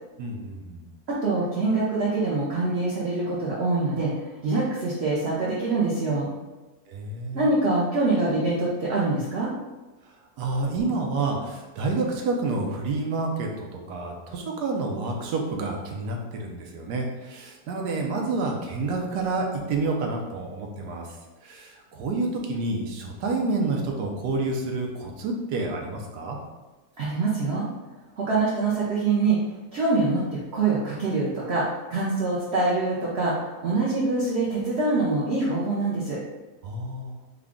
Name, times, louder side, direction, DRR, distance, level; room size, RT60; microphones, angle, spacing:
voice 1, 0.2-0.8 6.9-7.5 10.4-21.1 21.4-26.4 36.6-37.2, right 3 dB, 85° right, 1 dB, 1.2 m, -29 dB
voice 2, 1.1-6.3 7.3-9.5 27.0-27.7 28.2-29.4 29.7-30.2 30.5-36.2, right 3 dB, 60° right, -6 dB, 0.7 m, -24 dB
3.7 x 2.3 x 3.5 m, 1.2 s
omnidirectional pair, 1.7 m